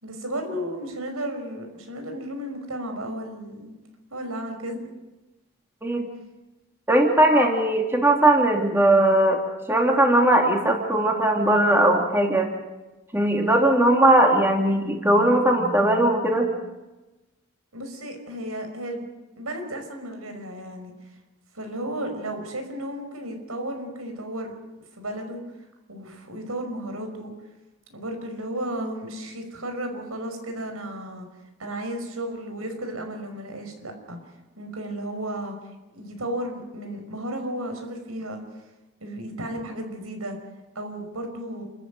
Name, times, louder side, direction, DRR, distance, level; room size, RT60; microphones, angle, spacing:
voice 1, 0.0-3.7 4.1-4.9 17.7-19.0 19.4-20.9 21.5-24.5 24.9-25.4 25.9-27.3 27.9-31.3 31.6-34.2 34.6-35.6 35.9-38.4 39.0-40.4 40.8-41.7, right 1 dB, 85° right, 5 dB, 5.6 m, -33 dB
voice 2, 6.9-9.4 9.7-12.5 13.1-16.5, right 1 dB, 10° right, 1 dB, 3.0 m, -19 dB
28.5 x 14.0 x 9.1 m, 1.1 s
head